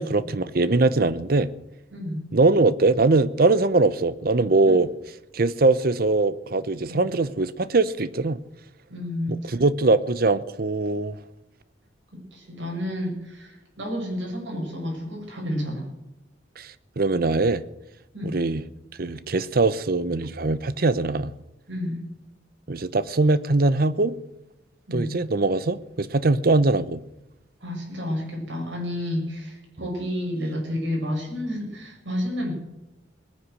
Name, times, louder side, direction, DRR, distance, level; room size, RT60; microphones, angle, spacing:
voice 1, 0.0-1.5 2.3-4.9 5.3-8.4 9.3-11.2 16.6-17.6 18.3-18.6 19.0-21.3 22.7-24.2 24.9-27.0, right 3 dB, 50° right, 0.7 m, -22 dB
voice 2, 1.9-2.2 4.7-4.8 6.9-7.1 8.9-9.6 12.1-15.8 18.1-18.4 21.7-22.1 24.9-25.1 27.6-32.5, left 1 dB, 80° right, 7.0 m, -30 dB
20.0 x 9.9 x 6.4 m
head